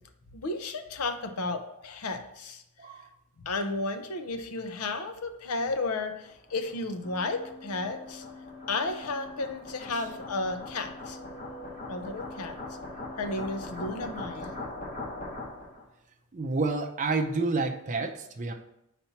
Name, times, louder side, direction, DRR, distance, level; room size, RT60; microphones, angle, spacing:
voice 1, 0.3-2.6 3.5-8.2 8.7-11.2 11.9-12.5 13.2-14.6, left 3 dB, 85° left, 7 dB, 0.7 m, -33 dB
voice 2, 2.8-3.1 9.9-10.0 16.3-18.5, right 3 dB, 35° right, 4 dB, 0.5 m, -29 dB
sound 1, 6.1-15.8, left 2 dB, 40° left, 1.1 m, -41 dB
sound 2, 7.0-14.6, left 2 dB, 60° left, 1.5 m, -48 dB
4.3 x 4.2 x 5.7 m, 0.82 s
head